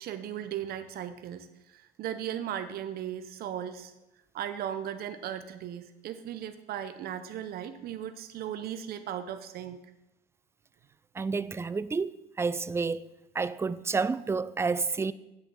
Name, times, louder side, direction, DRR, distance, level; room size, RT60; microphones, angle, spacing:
voice 1, 0.0-3.9 4.3-9.8, right 10 dB, 65° right, 0.8 m, -37 dB
voice 2, 11.2-12.1 12.4-13.0 13.3-15.1, right 4 dB, 15° right, 0.4 m, -29 dB
8.2 x 6.6 x 7.4 m
cardioid pair, 110°, 17 cm